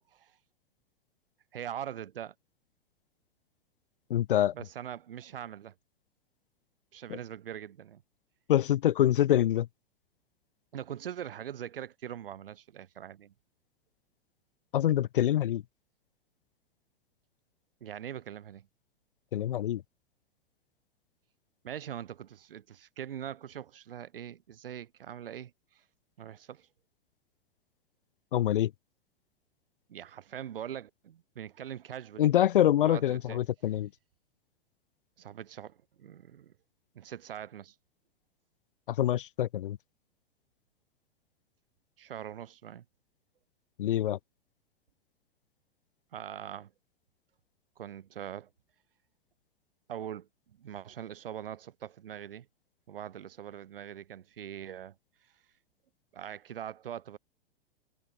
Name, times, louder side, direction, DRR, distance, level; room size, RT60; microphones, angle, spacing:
voice 1, 1.5-2.3 4.5-5.7 6.9-8.0 10.7-13.3 17.8-18.7 21.6-25.8 26.2-26.7 29.9-32.3 32.8-33.4 35.2-36.5 36.9-37.7 42.0-42.8 46.1-46.7 47.8-48.5 49.9-52.5 52.9-55.0 56.1-57.2, right 10 dB, 60° right, 7.7 m, -42 dB
voice 2, 4.1-4.5 8.5-9.7 14.7-15.6 19.3-19.8 28.3-28.7 32.2-33.9 38.9-39.8 43.8-44.2, left 12 dB, 55° left, 1.0 m, -25 dB
figure-of-eight pair, 100°, 31 cm